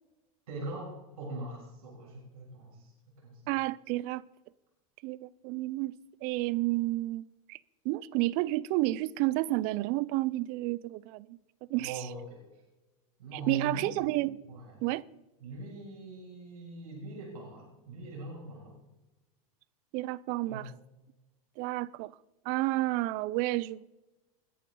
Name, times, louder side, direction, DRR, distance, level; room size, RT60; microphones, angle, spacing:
voice 1, 0.5-2.9 3.2-3.4 11.8-12.4 13.2-13.9 14.5-14.8 15.4-18.7 20.4-20.6, right 2 dB, 85° right, 6.5 m, -41 dB
voice 2, 3.5-4.2 5.0-5.9 6.2-7.6 7.8-11.4 11.7-12.1 13.3-14.4 14.8-15.0 19.9-20.7 21.6-22.1 22.4-23.8, right 18 dB, 55° right, 0.6 m, -31 dB
20.5 x 11.0 x 3.9 m
supercardioid pair, 115°, 18 cm